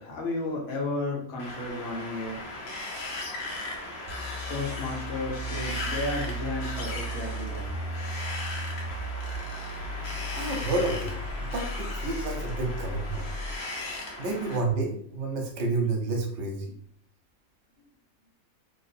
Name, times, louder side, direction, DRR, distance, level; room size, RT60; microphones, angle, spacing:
voice 1, 0.0-2.4 4.5-7.7, left 2 dB, 75° left, -1 dB, 1.3 m, -33 dB
Wind, 1.4-14.6, left 2 dB, 55° left, 0.8 m, -37 dB
sound 1, 4.1-13.7, right 1 dB, 75° right, 0.4 m, -36 dB
voice 2, 10.3-13.3 14.2-16.7, right 3 dB, 55° right, 1 dB, 1.0 m, -30 dB
3.0 x 2.0 x 4.1 m, 0.63 s
omnidirectional pair, 1.5 m